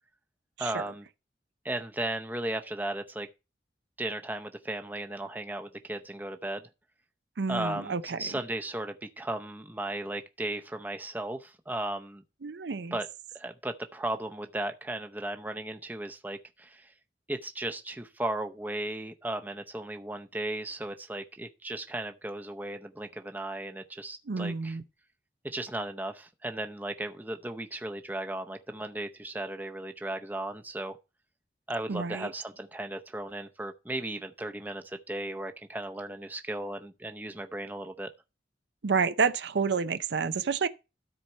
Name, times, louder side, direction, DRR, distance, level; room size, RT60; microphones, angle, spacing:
voice 1, 0.6-1.1 1.6-3.3 4.0-6.6 7.5-12.2 12.9-13.1 13.3-16.9 17.3-24.8 25.4-31.0 31.7-38.1, right 1 dB, 10° right, 0.6 m, -36 dB
voice 2, 7.4-8.4 12.4-13.0 24.3-24.8 31.9-32.3 38.8-40.7, right 5 dB, 75° right, 0.6 m, -29 dB
13.0 x 4.4 x 4.4 m
head